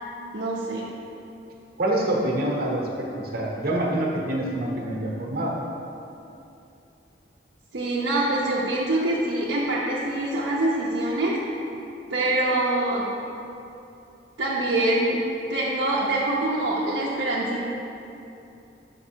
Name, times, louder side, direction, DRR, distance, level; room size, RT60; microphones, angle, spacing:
voice 1, 0.3-0.9 7.7-11.4 12.1-13.1 14.4-15.2 15.5-17.6, right 1 dB, 80° right, -7 dB, 0.7 m, -24 dB
voice 2, 1.8-5.5, right 1 dB, 55° right, -2 dB, 1.0 m, -26 dB
5.8 x 5.3 x 4.4 m, 2.8 s
head